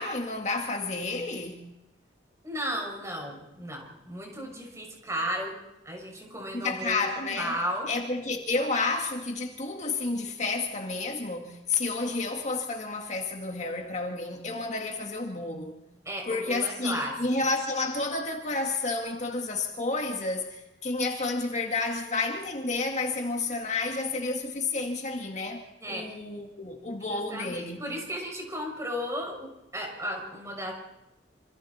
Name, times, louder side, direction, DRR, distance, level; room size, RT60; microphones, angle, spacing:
voice 1, 0.0-1.7 6.5-7.6 7.9-15.8 16.2-25.6 25.9-27.8, left 3 dB, 40° left, 1.9 m, -30 dB
voice 2, 2.4-5.5 5.8-7.9 16.0-17.1 25.8-26.1 27.0-30.7, equal, 15° right, 6.2 m, -34 dB
27.0 x 27.0 x 4.3 m
head